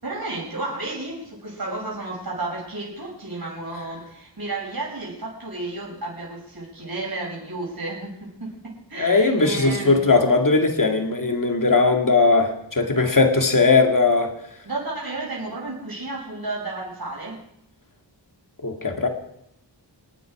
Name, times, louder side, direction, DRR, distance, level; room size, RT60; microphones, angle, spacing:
voice 1, 0.0-10.0 14.6-17.4, right 2 dB, 55° right, -4 dB, 6.1 m, -32 dB
voice 2, 9.0-14.3 18.6-19.1, left 3 dB, 45° left, 4 dB, 2.2 m, -19 dB
26.0 x 9.5 x 4.9 m, 0.76 s
wide cardioid pair, 65°, 43 cm